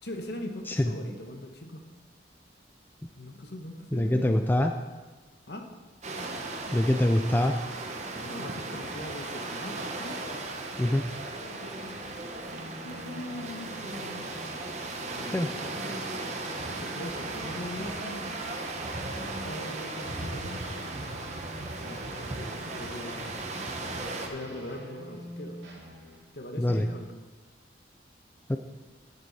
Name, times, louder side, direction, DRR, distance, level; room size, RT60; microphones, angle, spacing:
voice 1, 0.0-1.8 3.2-4.5 5.5-5.7 8.2-10.2 11.4-12.2 12.8-14.3 15.0-15.9 16.7-18.4 19.4-20.7 21.7-23.4 24.3-25.6 26.3-27.2, left 1 dB, 60° left, 4 dB, 1.2 m, -41 dB
voice 2, 3.9-4.7 6.7-7.5 10.8-11.0 15.3-15.5 26.6-26.9 28.5-28.6, left 1 dB, 10° left, 6 dB, 0.4 m, -24 dB
sound 1, 6.0-24.3, right 2 dB, 40° right, 1.0 m, -37 dB
sound 2, 12.5-26.2, equal, 80° right, 2.5 m, -46 dB
10.5 x 9.9 x 4.2 m, 1.3 s
head